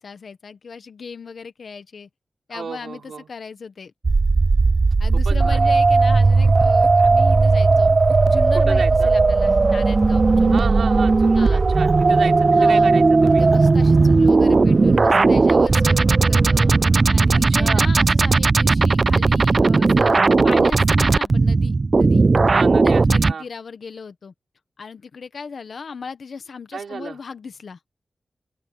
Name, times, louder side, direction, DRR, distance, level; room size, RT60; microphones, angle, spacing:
voice 1, 0.0-2.1 2.5-3.9 5.0-8.0 8.2-10.7 11.3-11.6 12.1-12.2 12.5-12.9 13.4-16.8 17.1-22.2 22.8-24.3 24.8-27.8, left 5 dB, 65° left, 1.4 m, -37 dB
voice 2, 2.5-3.3 5.1-5.6 8.5-9.1 10.5-13.4 17.6-17.9 22.4-23.5 26.7-27.2, right 6 dB, 90° right, 3.9 m, -32 dB
sound 1, 4.0-23.3, right 3 dB, 35° right, 0.3 m, -16 dB
open air
wide cardioid pair, 155°, 0 cm